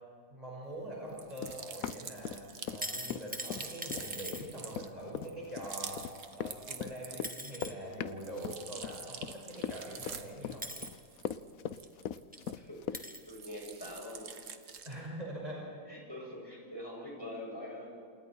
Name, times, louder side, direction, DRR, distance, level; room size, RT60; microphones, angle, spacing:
voice 1, 0.3-2.4 2.7-6.0 6.4-10.7 14.8-15.7, right 1 dB, 30° right, -3 dB, 5.8 m, -43 dB
sound 1, 1.1-7.6 7.9-12.8 13.2-15.1, right 6 dB, 70° right, 1.7 m, -47 dB
Run, 1.4-2.8 3.1-13.0, left 9 dB, 85° left, 1.2 m, -40 dB
sound 2, 2.6-4.4 6.7-6.8 7.2-7.7 9.6-9.7 10.6-10.9 11.9-12.0 12.3-12.4 12.9-13.3 14.1-14.2, right 1 dB, 5° right, 1.4 m, -41 dB
voice 2, 12.5-14.4 14.9-15.1 15.9-17.9, left 1 dB, 15° left, -3 dB, 7.6 m, -45 dB
28.5 x 28.5 x 4.6 m, 2.4 s
omnidirectional pair, 1.4 m